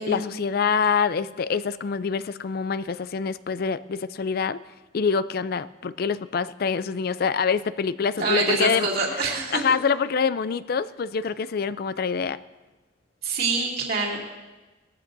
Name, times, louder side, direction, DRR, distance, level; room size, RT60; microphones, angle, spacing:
voice 1, 0.0-4.6 4.9-8.9 9.5-12.4, left 5 dB, 55° left, 15 dB, 0.4 m, -25 dB
voice 2, 8.2-9.6 13.2-14.2, right 3 dB, 55° right, -2 dB, 2.6 m, -25 dB
20.0 x 14.5 x 2.7 m, 1.2 s
head